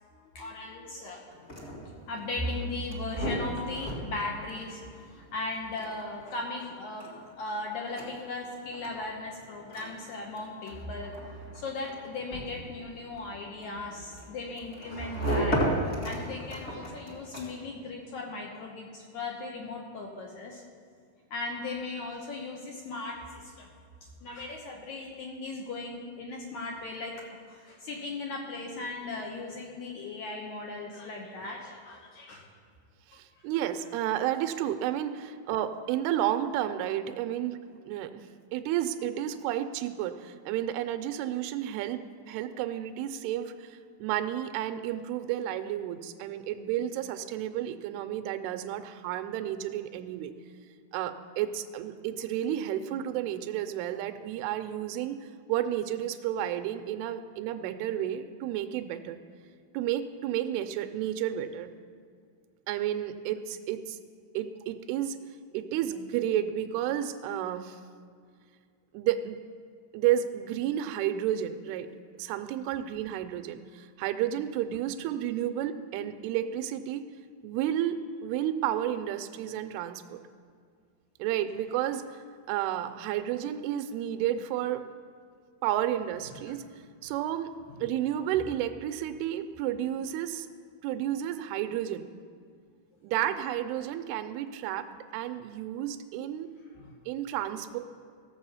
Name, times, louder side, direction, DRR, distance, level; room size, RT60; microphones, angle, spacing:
voice 1, 0.1-1.2 2.1-7.1 7.4-11.1 11.5-20.6 21.3-23.7 24.2-32.5 86.3-86.4 87.7-87.8 96.8-96.9, left 2 dB, 75° left, 0 dB, 1.8 m, -37 dB
sound 1, 1.3-17.8, right 1 dB, 40° left, 0.9 m, -36 dB
voice 2, 33.1-37.6 37.9-38.3 38.5-50.3 50.9-59.2 59.7-61.7 62.7-64.0 64.3-65.2 65.5-67.8 68.9-69.4 69.9-71.9 72.2-77.0 77.4-78.0 78.2-80.2 81.2-82.2 82.5-84.8 85.6-86.6 87.0-87.5 87.8-90.5 90.8-92.1 93.0-94.9 95.1-96.5 97.1-97.8, right 11 dB, 85° right, 8 dB, 2.5 m, -31 dB
16.0 x 7.5 x 5.6 m, 2.1 s
omnidirectional pair, 4.6 m